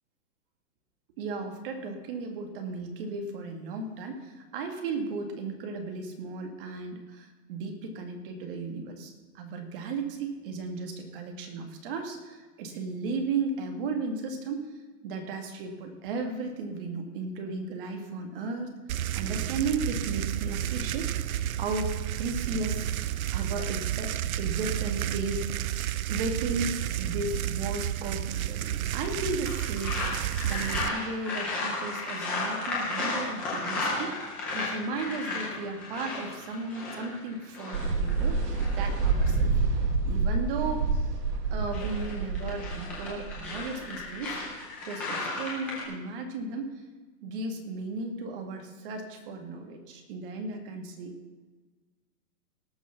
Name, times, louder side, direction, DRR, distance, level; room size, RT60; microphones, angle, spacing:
voice 1, 1.2-14.7 15.0-18.7 19.1-21.3 21.6-22.9 23.3-25.7 26.1-38.4 38.7-39.5 40.0-41.1 41.5-44.4 44.8-46.7 47.2-51.2, right 3 dB, 35° right, 4 dB, 2.1 m, -35 dB
sound 1, 18.9-30.9, right 12 dB, 65° right, 0.6 m, -31 dB
sound 2, 29.4-39.3 41.4-45.8, left 3 dB, 5° left, 0.5 m, -34 dB
sound 3, 37.7-44.4, right 4 dB, 85° right, 2.0 m, -28 dB
18.5 x 6.3 x 5.9 m, 1.3 s
hypercardioid pair, 160°, 47 cm